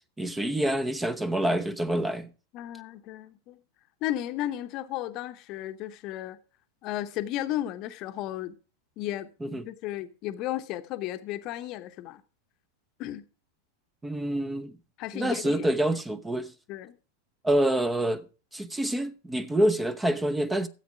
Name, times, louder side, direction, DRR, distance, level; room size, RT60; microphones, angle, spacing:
voice 1, 0.2-2.3 9.4-9.6 14.0-14.7 15.1-16.5 17.4-18.2 18.5-20.7, right 1 dB, 10° right, 0.7 m, -27 dB
voice 2, 2.5-3.6 4.0-6.4 6.8-8.6 9.0-12.2 13.0-13.3 15.0-15.7 16.7-17.0, left 13 dB, 40° left, 0.9 m, -34 dB
13.5 x 8.1 x 4.9 m
figure-of-eight pair, 90°, 0 cm